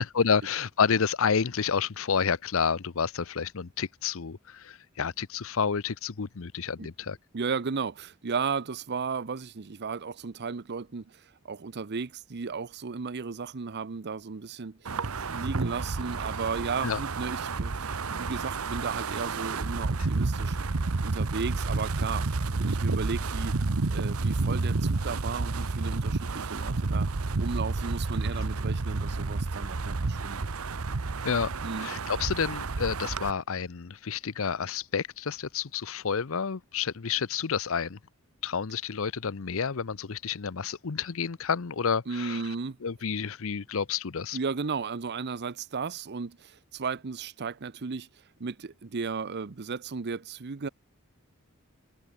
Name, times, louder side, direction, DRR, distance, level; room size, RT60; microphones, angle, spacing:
voice 1, 0.0-7.2 16.8-17.0 31.2-31.5 31.8-38.0 38.4-42.4 42.8-44.4, left 6 dB, 70° left, 0.7 m, -29 dB
voice 2, 7.3-20.6 21.0-23.6 23.9-27.1 27.4-30.5 31.6-31.9 42.1-42.8 44.3-50.7, right 5 dB, 50° right, 0.7 m, -35 dB
Wind, 14.9-33.3, right 3 dB, 80° right, 1.0 m, -30 dB
head